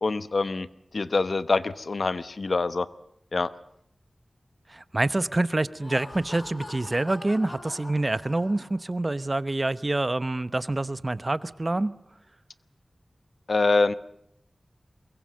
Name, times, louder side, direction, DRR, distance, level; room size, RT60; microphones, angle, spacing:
voice 1, 0.0-0.7 0.9-2.9 3.3-3.5 13.5-13.9, left 3 dB, 70° left, 14 dB, 0.9 m, -25 dB
voice 2, 4.7-12.0, right 2 dB, 35° right, 15 dB, 0.9 m, -27 dB
Laughter, 5.6-8.9, left 2 dB, 55° left, 3.8 m, -43 dB
23.0 x 21.0 x 7.6 m, 0.76 s
wide cardioid pair, 55°, 0 cm